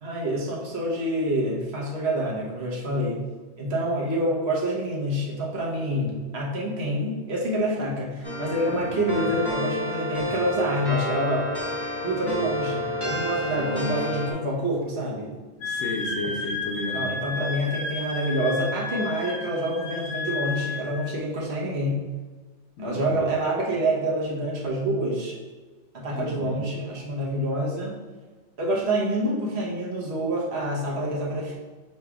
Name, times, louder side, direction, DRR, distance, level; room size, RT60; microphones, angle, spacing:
voice 1, 0.0-3.2 3.6-11.4 12.0-15.3 16.9-22.0 22.8-25.4 25.9-27.9 28.6-31.5, right 1 dB, 70° right, -4 dB, 1.2 m, -27 dB
sound 1, 8.2-14.3, left 1 dB, 20° left, 1.2 m, -30 dB
voice 2, 8.7-9.1 13.6-14.1 15.6-17.1 22.8-23.2 26.1-26.6, left 1 dB, 90° left, 2 dB, 1.0 m, -33 dB
Wind instrument woodwind instrument, 15.6-20.9, left 3 dB, 70° left, 1.2 m, -32 dB
6.7 x 3.2 x 2.3 m, 1.3 s
omnidirectional pair, 1.1 m